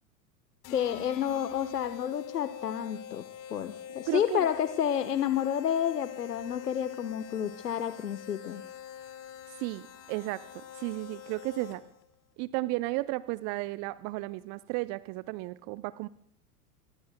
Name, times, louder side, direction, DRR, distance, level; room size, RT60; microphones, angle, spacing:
sound 1, 0.6-12.0, left 9 dB, 40° left, 4.2 m, -45 dB
voice 1, 0.7-3.2 3.5-8.6, left 9 dB, 80° left, 10 dB, 1.2 m, -30 dB
voice 2, 4.1-4.5 9.5-11.8 12.4-16.1, right 20 dB, 35° right, 17 dB, 0.6 m, -34 dB
25.5 x 23.0 x 2.2 m, 0.63 s
figure-of-eight pair, 95°, 47 cm